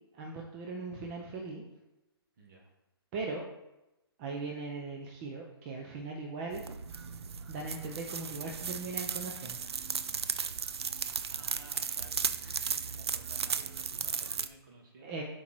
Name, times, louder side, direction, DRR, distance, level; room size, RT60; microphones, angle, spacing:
voice 1, 0.1-1.6 3.1-3.4 4.2-6.6 7.5-9.7 12.4-12.7 15.0-15.2, right 3 dB, 30° right, 1 dB, 0.8 m, -39 dB
voice 2, 2.4-2.7 11.3-12.2 12.5-15.2, right 2 dB, 50° right, -1 dB, 2.3 m, -55 dB
sound 1, 6.5-14.5, right 6 dB, 80° right, 0.6 m, -36 dB
6.9 x 4.6 x 4.6 m, 0.97 s
hypercardioid pair, 145°, 13 cm